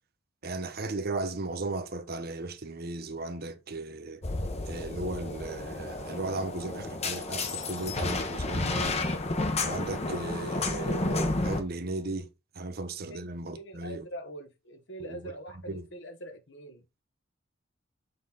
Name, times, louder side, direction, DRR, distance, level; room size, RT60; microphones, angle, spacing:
voice 1, 0.4-4.2 4.7-9.0 9.6-12.3 12.6-14.0 15.0-15.3 15.7-15.9, right 2 dB, 55° right, 0.9 m, -36 dB
sound 1, 4.2-11.6, left 2 dB, 35° left, 1.0 m, -31 dB
voice 2, 13.1-17.0, right 1 dB, 65° left, 1.3 m, -44 dB
7.0 x 4.0 x 3.9 m
head